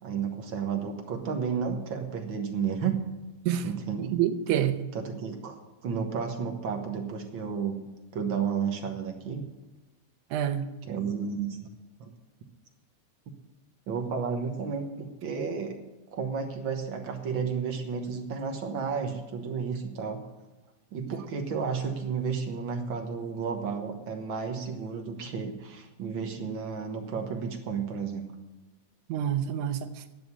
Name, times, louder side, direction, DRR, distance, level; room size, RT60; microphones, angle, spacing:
voice 1, 0.0-3.0 3.6-4.2 4.9-7.8 8.1-9.5 10.8-11.7 12.0-12.1 13.9-15.8 16.1-20.2 20.9-28.3, right 6 dB, 55° right, 1.6 m, -32 dB
voice 2, 4.0-4.8 10.3-10.7 29.1-29.9, right 10 dB, 85° right, 2.3 m, -27 dB
10.5 x 7.7 x 9.4 m
omnidirectional pair, 3.4 m